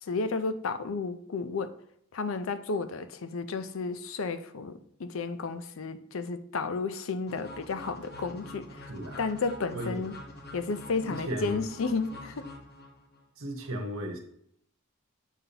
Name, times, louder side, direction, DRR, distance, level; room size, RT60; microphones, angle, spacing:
voice 1, 0.0-1.8 2.1-8.9 9.2-10.2 10.5-12.5, left 4 dB, 70° left, 0.5 m, -32 dB
sound 1, 7.3-13.2, left 1 dB, 50° left, 1.1 m, -46 dB
voice 2, 8.9-9.2 9.7-10.0 11.0-11.6 13.4-14.2, right 1 dB, 75° right, 1.0 m, -35 dB
7.3 x 5.3 x 2.8 m
head